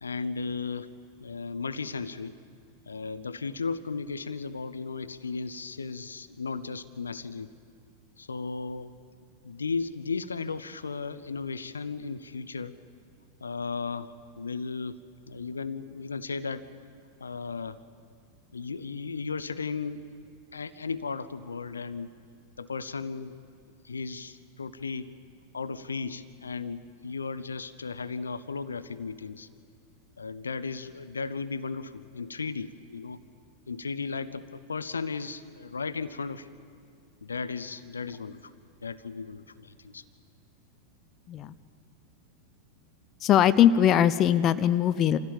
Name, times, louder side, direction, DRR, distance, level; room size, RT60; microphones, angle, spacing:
voice 1, 0.0-0.9 1.2-2.4 2.9-7.5 8.2-8.9 9.4-12.7 13.4-15.0 15.3-16.7 17.2-17.8 18.5-20.0 20.5-22.1 22.6-23.3 23.8-25.1 25.5-29.5 30.2-33.2 33.7-36.5 37.2-38.5 38.8-40.0, left 4 dB, 75° left, 15 dB, 0.7 m, -35 dB
voice 2, 43.2-45.2, left 10 dB, 35° left, 14 dB, 0.6 m, -21 dB
26.0 x 15.5 x 7.3 m, 2.3 s
figure-of-eight pair, 90°, 0 cm